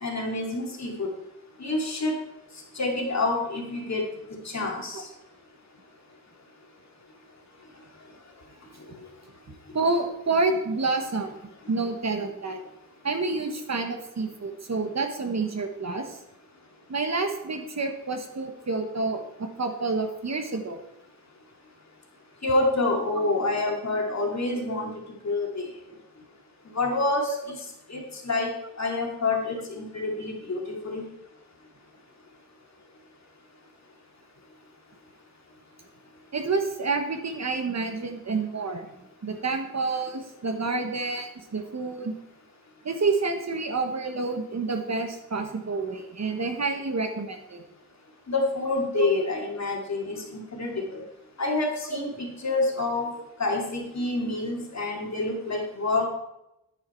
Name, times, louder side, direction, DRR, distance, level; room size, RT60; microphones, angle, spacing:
voice 1, 0.0-1.1 1.6-2.1 2.7-4.1 4.4-5.0 22.4-24.9 25.2-25.7 26.7-27.6 27.9-28.5 28.8-31.0 48.3-51.0 51.4-52.1 52.4-53.1 53.4-56.1, left 2 dB, 50° left, 0 dB, 2.5 m, -27 dB
voice 2, 9.7-11.3 11.7-12.6 13.0-16.2 16.9-20.8 24.7-24.8 36.3-38.9 39.2-42.2 42.8-47.6 48.9-49.1, right 3 dB, 45° right, 5 dB, 1.3 m, -28 dB
9.7 x 9.3 x 4.4 m, 0.87 s
wide cardioid pair, 150°, 36 cm